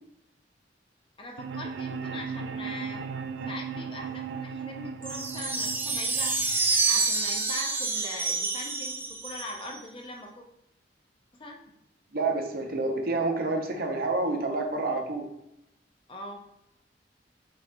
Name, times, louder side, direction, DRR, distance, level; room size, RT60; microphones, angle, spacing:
voice 1, 1.2-3.0 3.4-6.3 6.8-10.4 11.3-11.6 16.1-16.4, left 1 dB, 30° left, 2 dB, 0.6 m, -41 dB
sound 1, 1.4-7.4, right 6 dB, 80° right, 0.3 m, -37 dB
sound 2, 5.0-9.8, right 4 dB, 10° right, 0.5 m, -28 dB
voice 2, 12.1-15.2, right 2 dB, 55° right, 3 dB, 0.8 m, -28 dB
5.3 x 3.2 x 2.9 m, 0.84 s
head